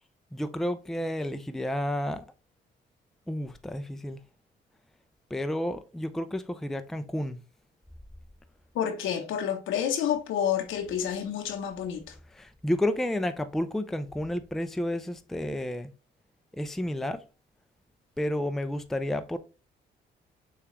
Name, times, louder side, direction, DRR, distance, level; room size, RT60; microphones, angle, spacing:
voice 1, 0.3-2.2 3.3-4.2 5.3-7.4 12.3-15.9 16.5-17.2 18.2-19.4, left 1 dB, ahead, 0.4 m, -31 dB
voice 2, 8.7-12.1, left 9 dB, 85° left, 0.9 m, -29 dB
6.7 x 2.4 x 3.1 m
cardioid pair, 90°, 20 cm